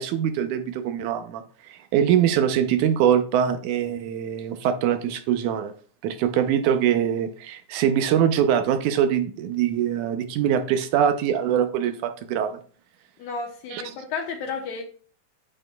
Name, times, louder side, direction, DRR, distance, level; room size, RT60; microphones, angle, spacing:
voice 1, 0.0-5.7 6.0-12.6 13.7-14.0, right 9 dB, 80° right, 8 dB, 2.0 m, -23 dB
voice 2, 13.2-14.8, left 5 dB, 70° left, 3 dB, 1.8 m, -32 dB
8.8 x 8.4 x 2.2 m, 0.42 s
omnidirectional pair, 3.7 m